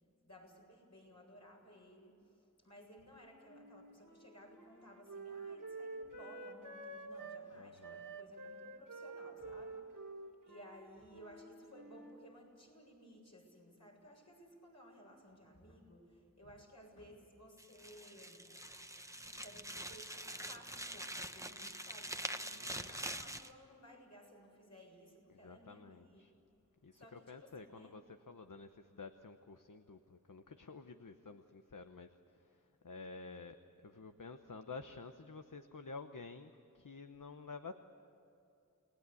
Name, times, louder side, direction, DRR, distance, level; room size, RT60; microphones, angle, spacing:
voice 1, 0.2-10.0 10.4-18.5 19.2-20.2 20.5-26.3 27.0-28.0, equal, 55° left, -1 dB, 7.6 m, -58 dB
Wind instrument woodwind instrument, 3.5-7.4 7.8-12.2, right 3 dB, 75° right, 2.1 m, -49 dB
voice 2, 7.5-8.0 22.5-23.0 25.3-26.3 26.8-33.6 33.8-37.7, left 4 dB, 75° left, 7 dB, 1.0 m, -51 dB
sound 1, 17.6-23.5, right 1 dB, 10° right, 1.1 m, -45 dB
29.5 x 19.5 x 8.4 m, 2.7 s
wide cardioid pair, 45°, 32 cm